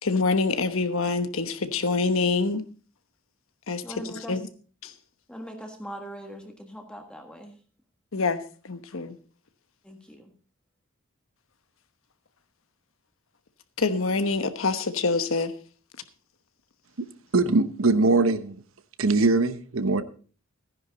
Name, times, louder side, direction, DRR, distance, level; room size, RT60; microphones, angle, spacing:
voice 1, 0.0-2.6 3.7-4.4 4.8-4.9 8.1-9.2 13.8-15.5, left 3 dB, 75° left, 1.1 m, -26 dB
voice 2, 3.8-4.4 5.3-7.6 9.8-10.3, equal, 5° left, 1.5 m, -41 dB
voice 3, 17.3-18.6 19.0-20.0, right 3 dB, 75° right, 0.9 m, -21 dB
15.0 x 10.0 x 4.0 m
head